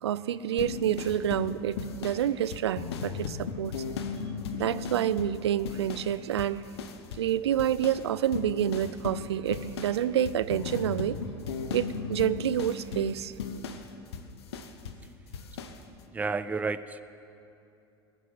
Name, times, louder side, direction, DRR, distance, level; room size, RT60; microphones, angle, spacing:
voice 1, 0.0-3.8 4.5-6.6 7.2-11.2 11.7-13.3, right 10 dB, 80° right, 15 dB, 0.5 m, -28 dB
sound 1, 0.6-6.1 6.4-7.3 7.6-15.0 15.3-15.8, left 5 dB, 75° left, 0.9 m, -37 dB
voice 2, 16.1-17.0, right 4 dB, 10° right, 13 dB, 0.4 m, -31 dB
20.5 x 6.9 x 7.8 m, 2.7 s
hypercardioid pair, 75°, 14 cm